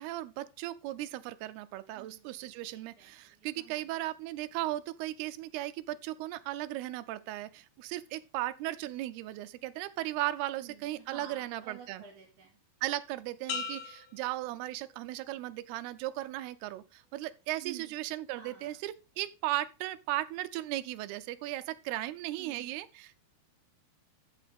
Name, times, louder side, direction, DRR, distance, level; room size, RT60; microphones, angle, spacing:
voice 1, 0.0-12.0 12.8-23.2, right 15 dB, 80° right, 2.3 m, -36 dB
voice 2, 2.0-2.4 2.7-3.9 10.6-12.6 17.6-17.9 18.4-18.8 22.4-22.7, right 9 dB, 65° right, 4.8 m, -50 dB
sound 1, 13.5-15.3 15.8-16.2, left 6 dB, 75° left, 3.1 m, -41 dB
13.5 x 5.8 x 3.5 m
omnidirectional pair, 5.1 m